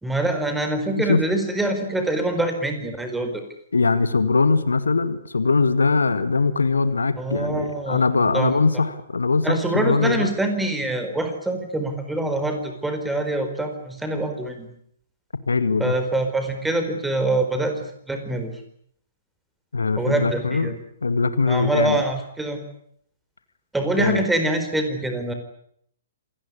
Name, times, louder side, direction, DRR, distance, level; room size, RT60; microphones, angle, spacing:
voice 1, 0.0-3.4 7.2-8.0 8.3-8.5 9.4-14.7 15.8-18.5 20.0-20.8 21.5-22.6 23.7-25.3, right 2 dB, 5° right, 6 dB, 4.7 m, -25 dB
voice 2, 1.0-1.3 3.7-10.3 15.5-16.0 19.7-20.7 21.0-22.0 24.0-24.2, left 4 dB, 70° left, 13 dB, 2.0 m, -21 dB
27.0 x 19.0 x 9.9 m, 0.68 s
figure-of-eight pair, 120°, 0 cm